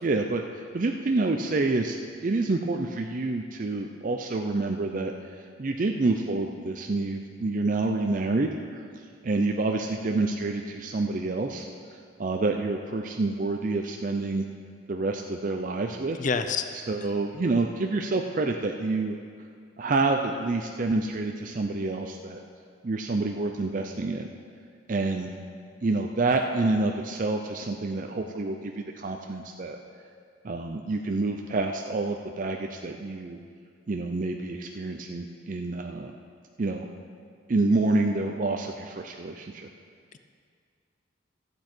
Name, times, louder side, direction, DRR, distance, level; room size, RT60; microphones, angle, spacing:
voice 1, 0.0-5.1 5.6-8.8 9.2-11.7 12.2-14.5 14.9-16.2 16.9-19.2 19.8-22.4 22.8-24.3 24.9-25.3 25.8-29.8 30.4-33.4 33.9-36.1 36.6-36.9 37.5-39.7, right 3 dB, 40° right, 3 dB, 0.5 m, -28 dB
voice 2, 16.2-16.7, left 5 dB, 40° left, 8 dB, 0.5 m, -26 dB
14.5 x 7.9 x 4.5 m, 2.1 s
head